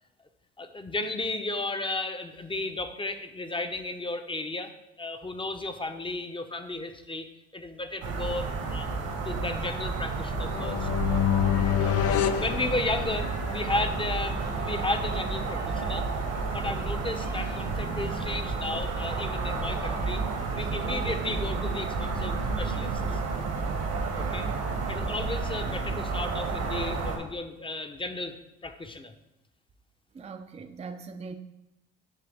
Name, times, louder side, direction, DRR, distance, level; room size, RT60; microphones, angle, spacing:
voice 1, 0.6-4.7 5.0-8.9 9.2-10.9 11.8-16.1 16.5-20.2 20.5-23.2 24.1-24.5 24.9-28.4 28.6-29.1, left 2 dB, 15° left, 7 dB, 0.8 m, -34 dB
sound 1, 8.0-27.2, right 4 dB, 75° right, 1.5 m, -31 dB
sound 2, 10.3-21.2, left 2 dB, 85° left, 2.0 m, -49 dB
sound 3, 10.4-13.4, left 10 dB, 55° left, 0.4 m, -27 dB
voice 2, 30.1-31.4, right 4 dB, 20° right, 6 dB, 0.5 m, -40 dB
9.9 x 3.4 x 3.4 m, 0.91 s
hypercardioid pair, 55°, 30 cm